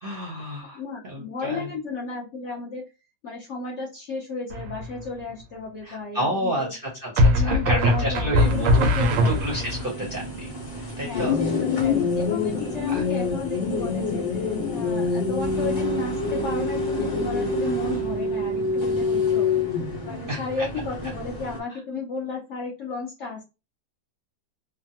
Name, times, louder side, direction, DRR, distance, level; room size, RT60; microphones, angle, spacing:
voice 1, 0.0-0.8 1.1-1.7 5.8-10.5 11.0-11.3 12.9-13.0 20.3-20.7, equal, 50° right, -3 dB, 0.7 m, -30 dB
voice 2, 0.7-2.8 3.2-6.7 7.3-9.4 11.0-14.4 14.7-19.5 20.0-23.5, left 4 dB, 65° left, -4 dB, 0.7 m, -33 dB
sound 1, 4.5-5.0 7.2-9.8, equal, 80° right, 1.2 m, -21 dB
sound 2, 8.3-21.6, right 2 dB, 25° left, 0.8 m, -35 dB
sound 3, 11.1-20.1, left 4 dB, 85° left, 1.3 m, -26 dB
3.2 x 2.1 x 2.7 m, 0.29 s
omnidirectional pair, 2.0 m